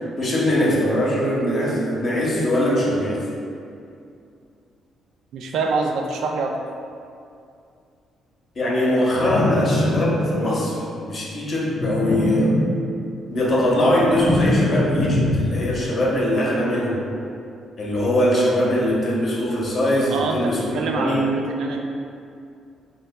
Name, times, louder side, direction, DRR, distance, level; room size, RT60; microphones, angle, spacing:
voice 1, 0.2-3.3 8.6-12.6 13.3-17.1 17.8-21.3, equal, 45° left, -4 dB, 0.8 m, -21 dB
voice 2, 5.3-6.6 20.1-21.8, right 3 dB, 80° right, 2 dB, 0.3 m, -25 dB
sound 1, 9.1-10.7 11.7-13.2 13.5-15.9, left 2 dB, 70° left, 0.4 m, -23 dB
5.3 x 2.1 x 2.2 m, 2.4 s
cardioid pair, 90°, 0 cm